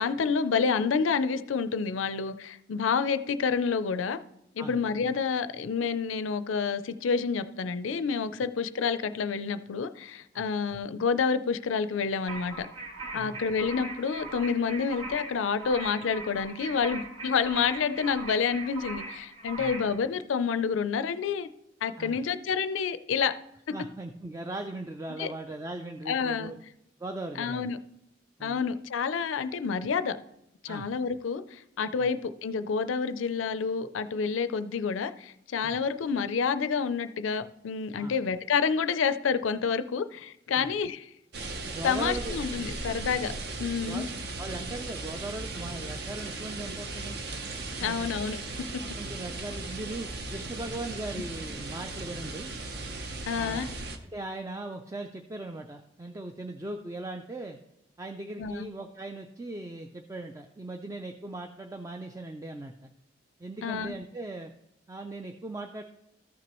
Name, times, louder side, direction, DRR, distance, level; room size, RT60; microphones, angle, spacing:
voice 1, 0.0-4.2 4.6-12.7 13.1-21.5 21.8-23.3 25.2-25.3 26.1-26.5 27.4-27.8 28.4-30.2 30.6-41.1 41.8-43.3 43.6-44.1 47.8-48.4 48.7-48.8 53.3-53.7 58.4-58.7 63.6-63.9, left 5 dB, 90° left, 12 dB, 0.4 m, -28 dB
sound 1, 12.3-19.9, right 3 dB, 35° right, 2.4 m, -40 dB
voice 2, 23.7-26.6 27.0-27.7 28.4-28.6 30.7-30.9 35.6-35.8 38.0-38.1 40.6-40.7 41.7-42.4 43.9-44.1 44.4-47.2 47.8-48.1 49.0-52.5 53.4-53.7 54.0-57.6 58.0-62.7 63.4-64.5 64.9-65.8, right 2 dB, 15° right, 5 dB, 0.3 m, -39 dB
sound 2, 41.3-54.0, right 2 dB, 55° right, 0.7 m, -37 dB
14.0 x 6.0 x 3.0 m, 0.82 s
head